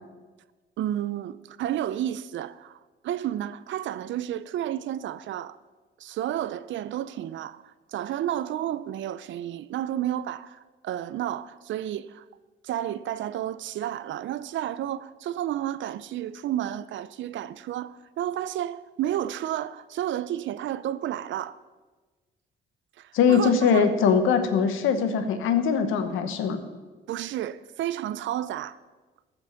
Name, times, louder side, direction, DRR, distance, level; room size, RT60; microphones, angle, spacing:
voice 1, 0.8-2.8 3.0-5.6 6.0-12.2 12.6-21.6 23.0-23.9 27.1-28.8, right 12 dB, 70° right, 0.5 m, -31 dB
voice 2, 23.1-26.6, left 6 dB, 90° left, 1.2 m, -22 dB
14.0 x 6.0 x 6.8 m
cardioid pair, 90°, 20 cm